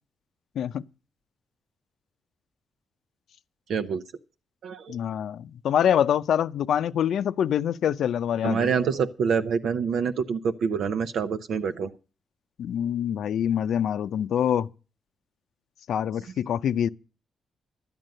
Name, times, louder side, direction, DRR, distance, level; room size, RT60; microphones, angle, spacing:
voice 1, 3.7-4.0 4.6-4.9 8.4-11.9, right 6 dB, 80° right, 0.8 m, -26 dB
voice 2, 4.9-8.7 12.6-14.7 15.9-16.9, left 9 dB, 80° left, 0.6 m, -25 dB
12.0 x 9.1 x 6.6 m
cardioid pair, 90°, 0 cm